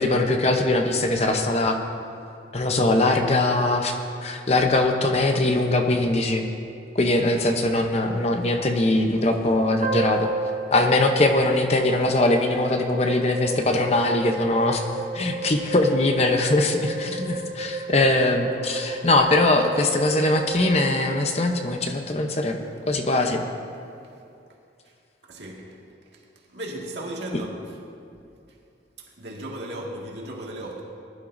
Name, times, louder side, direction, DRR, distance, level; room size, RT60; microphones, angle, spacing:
voice 1, 0.0-1.8 2.5-4.0 4.2-6.4 6.9-10.3 10.7-22.6 22.9-23.4, left 2 dB, 35° left, 4 dB, 0.8 m, -21 dB
sound 1, 9.8-22.0, right 2 dB, 40° right, 0.7 m, -33 dB
voice 2, 25.3-25.8 26.1-26.2 26.5-27.6 29.2-30.8, right 1 dB, 70° right, -2 dB, 2.0 m, -35 dB
20.0 x 11.5 x 2.7 m, 2.5 s
head